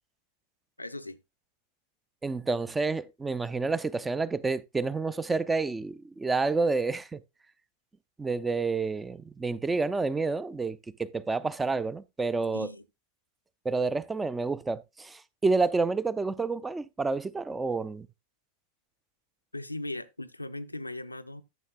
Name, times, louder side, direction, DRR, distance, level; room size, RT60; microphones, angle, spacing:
voice 1, 0.8-1.2 12.5-12.9 19.5-21.4, left 1 dB, 85° left, 0.5 m, -38 dB
voice 2, 2.2-7.2 8.2-12.7 13.6-18.1, right 3 dB, 10° right, 0.5 m, -29 dB
12.0 x 7.2 x 2.4 m
figure-of-eight pair, 90°, 0 cm